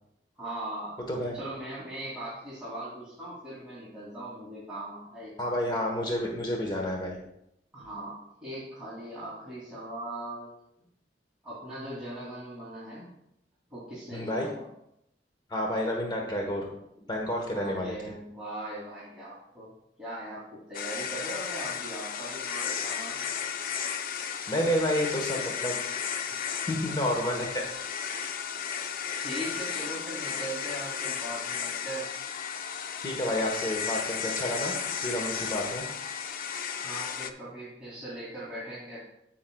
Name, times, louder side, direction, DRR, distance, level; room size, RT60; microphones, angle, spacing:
voice 1, 0.4-1.0 1.3-5.4 7.7-8.2 8.4-10.5 11.4-13.1 13.7-14.7 17.5-19.7 20.0-23.2 25.1-25.4 26.0-26.1 29.2-32.1 36.8-39.0, right 1 dB, 5° right, -11 dB, 2.7 m, -39 dB
voice 2, 5.4-7.2 14.1-14.5 15.5-16.7 17.1-18.0 24.5-25.8 26.7-27.7 33.0-34.7 35.0-35.8, left 1 dB, 25° left, 0 dB, 1.1 m, -29 dB
sound 1, 20.7-37.3, left 7 dB, 50° left, 0.4 m, -34 dB
15.5 x 5.7 x 2.3 m, 0.80 s
head